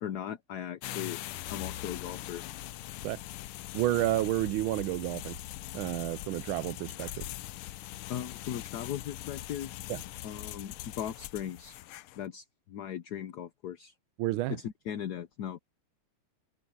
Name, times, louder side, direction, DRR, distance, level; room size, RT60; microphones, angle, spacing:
voice 1, 0.0-1.2 1.5-2.4 8.1-9.8 10.2-11.8 12.2-13.9 14.5-15.6, left 10 dB, 60° left, 1.1 m, -38 dB
sound 1, 0.8-12.2, left 15 dB, 80° left, 1.5 m, -42 dB
voice 2, 3.7-5.4 5.7-7.3 9.9-10.0 14.2-14.6, right 15 dB, 75° right, 1.3 m, -30 dB
omnidirectional pair, 2.4 m